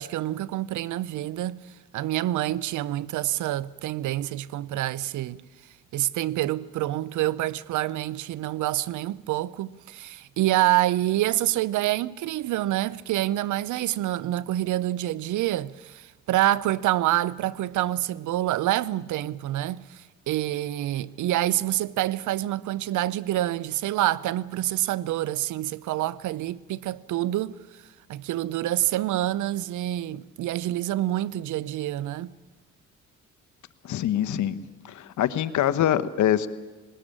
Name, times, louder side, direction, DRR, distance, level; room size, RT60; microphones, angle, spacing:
voice 1, 0.0-1.6 1.9-5.4 5.9-27.6 28.1-32.3, right 14 dB, 80° right, 0.7 m, -27 dB
voice 2, 33.8-34.6 34.8-36.5, left 11 dB, 70° left, 1.1 m, -24 dB
20.0 x 19.0 x 8.9 m
cardioid pair, 90°, 30 cm